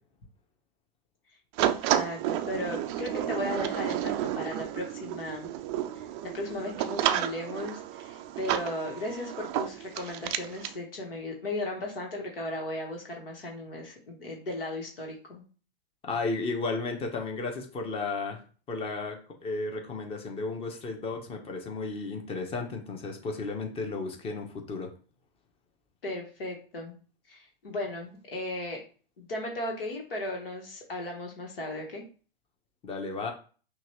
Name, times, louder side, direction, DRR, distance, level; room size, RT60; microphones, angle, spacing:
voice 1, 1.6-5.5 5.9-15.4 26.0-27.0 27.3-28.8 29.2-32.0, left 1 dB, 70° left, 1 dB, 1.5 m, -36 dB
sound 1, 1.6-10.8, right 11 dB, 30° right, 0.4 m, -31 dB
voice 2, 16.0-18.4 18.7-24.9 32.8-33.3, left 3 dB, 20° left, 4 dB, 1.0 m, -33 dB
5.8 x 2.5 x 3.0 m, 0.38 s
hypercardioid pair, 110°, 29 cm